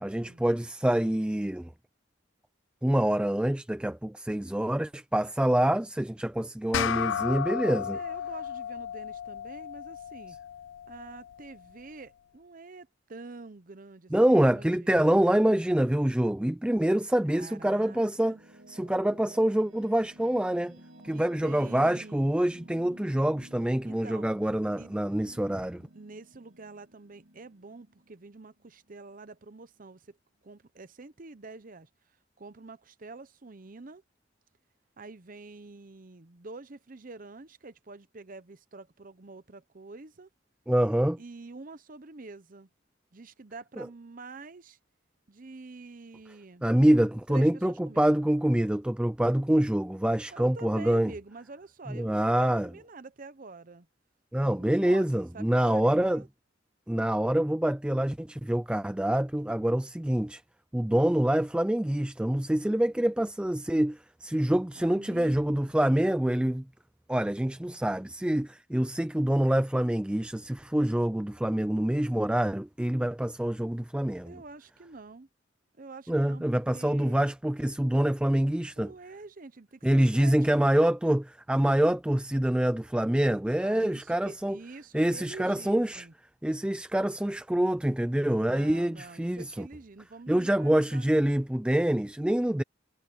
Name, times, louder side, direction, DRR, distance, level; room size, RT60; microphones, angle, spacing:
voice 1, 0.0-1.7 2.8-8.0 14.1-18.4 18.7-20.8 21.0-25.8 40.7-41.2 43.8-43.9 46.6-51.1 51.9-52.7 54.3-56.2 56.9-60.4 60.7-66.6 67.1-74.3 76.1-78.9 79.8-81.2 81.5-84.6 84.9-86.1 86.4-89.7 90.3-92.6, right 1 dB, 5° right, 0.3 m, -26 dB
sound 1, 6.7-11.5, left 9 dB, 75° left, 0.4 m, -34 dB
voice 2, 7.9-10.4 10.9-15.1 17.2-18.4 21.1-22.3 23.8-24.3 24.8-24.9 25.9-30.2 30.4-31.9 32.4-34.0 35.0-40.3 41.2-42.7 43.1-44.8 45.3-46.7 47.3-48.1 50.3-53.9 54.4-56.3 64.7-65.7 74.2-75.3 75.8-77.2 78.8-80.4 83.6-86.1 88.4-91.3, right 3 dB, 45° right, 0.8 m, -47 dB
sound 2, 17.9-28.9, right 1 dB, 90° right, 3.5 m, -54 dB
head